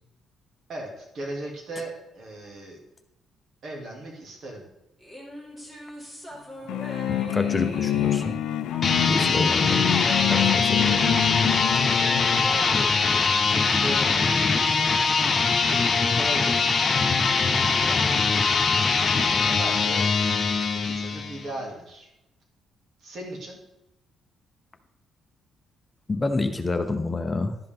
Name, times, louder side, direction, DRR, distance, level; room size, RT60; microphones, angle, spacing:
voice 1, 0.7-2.8 3.6-4.6 12.3-14.1 15.7-17.1 17.8-18.5 19.4-20.1 20.7-22.1 23.0-23.6, right 1 dB, 60° right, -1 dB, 2.6 m, -37 dB
sound 1, 5.0-13.6, equal, 20° right, 2.3 m, -41 dB
sound 2, 6.7-12.5, left 12 dB, 90° left, 0.3 m, -27 dB
voice 2, 7.1-8.3 9.1-9.9 10.3-10.9 26.1-27.6, left 2 dB, 25° left, 7 dB, 0.8 m, -28 dB
sound 3, 8.7-21.5, left 4 dB, 45° left, 1.1 m, -22 dB
11.5 x 5.6 x 3.6 m, 0.86 s
cardioid pair, 90°, 0 cm